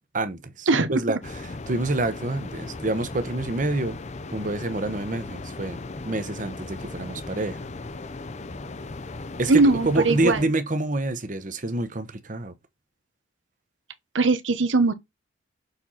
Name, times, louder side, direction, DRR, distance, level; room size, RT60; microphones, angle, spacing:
voice 1, 0.1-1.2 1.7-4.0 4.3-5.8 6.0-7.6 9.4-12.5, right 2 dB, 45° right, 1.0 m, -27 dB
sound 1, 1.2-10.4, left 3 dB, 40° left, 0.6 m, -37 dB
voice 2, 9.5-10.4 14.1-14.9, right 3 dB, 90° right, 1.0 m, -20 dB
6.8 x 4.4 x 4.1 m
head